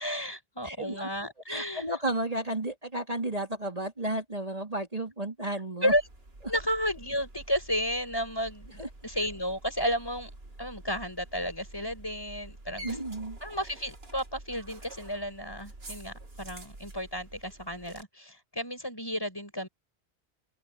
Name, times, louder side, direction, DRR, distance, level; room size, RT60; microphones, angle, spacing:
voice 1, 0.0-1.9 5.8-6.0 6.5-10.3 10.6-13.0 13.4-19.7, equal, 20° left, 5.9 m, -32 dB
voice 2, 0.6-1.1 1.5-5.9 8.8-8.9 12.8-13.4, right 1 dB, 35° right, 4.3 m, -33 dB
sound 1, 5.9-18.0, right 2 dB, 65° right, 2.8 m, -48 dB
open air
omnidirectional pair, 1.1 m